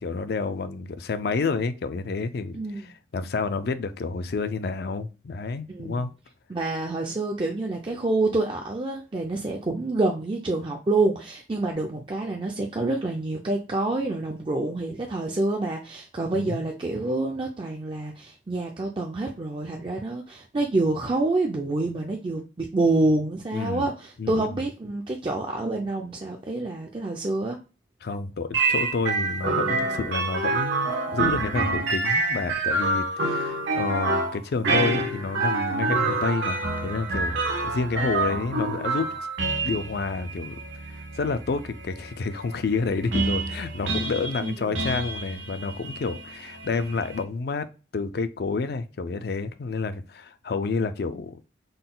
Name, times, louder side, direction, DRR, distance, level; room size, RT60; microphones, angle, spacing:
voice 1, 0.0-6.1 16.3-16.6 23.5-23.9 24.2-24.6 28.0-39.1 39.6-40.6 40.9-47.7 47.9-51.4, left 4 dB, 55° left, 0.4 m, -29 dB
voice 2, 5.7-6.0 6.5-27.6 44.4-44.8, right 2 dB, 25° right, 0.4 m, -27 dB
sound 1, 28.5-47.2, right 3 dB, 80° right, 1.0 m, -27 dB
3.8 x 2.2 x 3.7 m
head